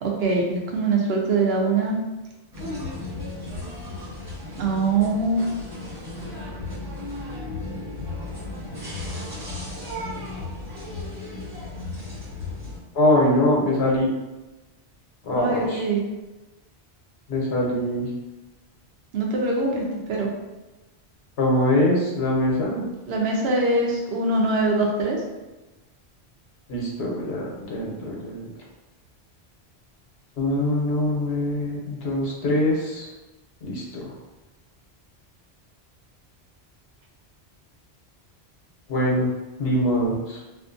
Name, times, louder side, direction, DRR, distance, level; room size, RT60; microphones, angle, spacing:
voice 1, 0.0-2.0 4.6-5.6 15.4-16.0 19.1-19.8 20.1-20.3 23.1-25.2, right 3 dB, 75° right, -1 dB, 0.8 m, -23 dB
sound 1, 2.5-12.8, left 2 dB, 50° right, 1.6 m, -34 dB
voice 2, 12.9-14.1 15.2-15.9 17.3-18.1 21.4-22.8 26.7-28.5 30.4-33.1 33.6-34.1 38.9-39.3 39.6-40.4, left 1 dB, 75° left, -3 dB, 1.0 m, -23 dB
2.5 x 2.5 x 2.5 m, 1.1 s
omnidirectional pair, 1.1 m